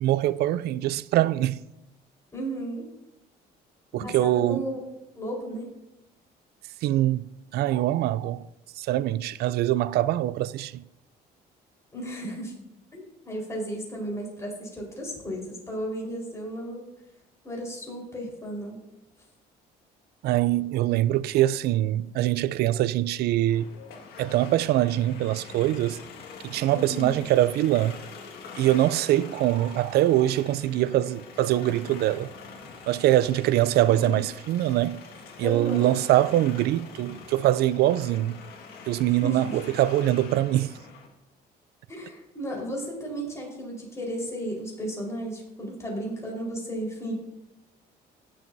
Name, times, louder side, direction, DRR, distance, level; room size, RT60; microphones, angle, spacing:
voice 1, 0.0-1.6 3.9-4.7 6.8-8.4 8.8-10.8 20.2-23.7 24.2-26.0 26.4-28.0 28.6-32.3 32.9-35.0 35.4-38.4 38.9-40.8, right 14 dB, 70° right, 0.4 m, -23 dB
voice 2, 2.3-2.8 4.0-4.8 5.1-5.7 11.9-12.5 12.9-16.9 17.4-18.8 26.7-27.2 33.9-34.1 35.4-35.9 39.2-39.4 41.9-47.1, right 1 dB, 15° left, 4.3 m, -34 dB
sound 1, 23.5-41.1, left 5 dB, 70° left, 1.8 m, -44 dB
17.5 x 7.6 x 2.7 m
cardioid pair, 110°, 17 cm